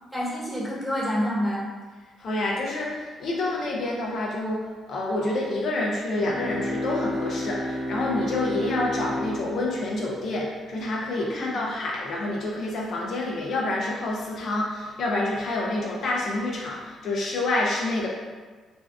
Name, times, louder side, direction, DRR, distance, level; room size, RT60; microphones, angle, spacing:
voice 1, 0.1-1.6 11.1-11.6, equal, 5° right, -7 dB, 1.0 m, -28 dB
voice 2, 2.2-18.1, left 2 dB, 60° left, -3 dB, 0.5 m, -28 dB
sound 1, 6.2-10.8, left 1 dB, 55° right, 0.6 m, -31 dB
2.6 x 2.3 x 3.3 m, 1.4 s
cardioid pair, 90°, 0 cm